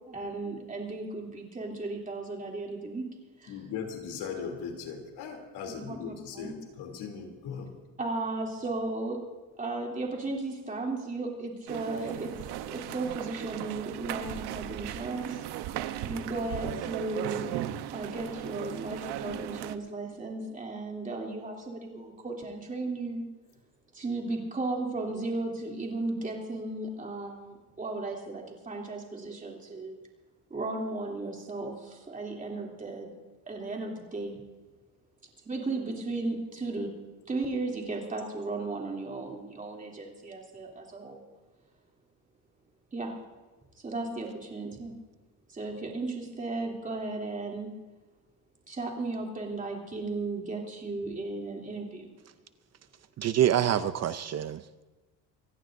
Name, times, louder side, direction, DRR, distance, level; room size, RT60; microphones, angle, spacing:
voice 1, 0.1-3.1 3.4-3.6 5.7-6.5 8.0-9.2 9.6-12.3 12.7-15.5 16.0-17.5 17.9-23.2 23.9-29.9 30.5-33.1 33.5-34.4 35.4-36.9 37.3-41.2 42.9-43.1 43.8-44.9 45.5-47.7 48.7-52.1, right 2 dB, 20° right, 2.9 m, -35 dB
voice 2, 3.5-7.7, left 6 dB, 75° left, 3.0 m, -39 dB
sound 1, 11.7-19.8, right 12 dB, 75° right, 0.9 m, -37 dB
voice 3, 53.2-54.8, right 10 dB, 40° right, 0.5 m, -26 dB
26.0 x 16.5 x 2.6 m
cardioid pair, 140°, 39 cm